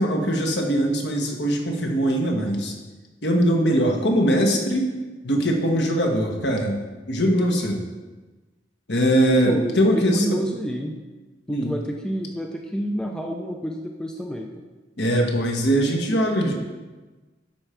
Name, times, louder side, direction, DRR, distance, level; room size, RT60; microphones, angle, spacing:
voice 1, 0.0-2.7 3.2-4.9 5.2-6.8 7.1-7.8 8.9-10.2 11.5-11.7 15.0-16.5, equal, 60° left, 2 dB, 1.4 m, -21 dB
voice 2, 9.4-10.9 11.5-14.5, equal, 5° left, 1 dB, 0.5 m, -29 dB
12.0 x 4.5 x 5.1 m, 1.2 s
head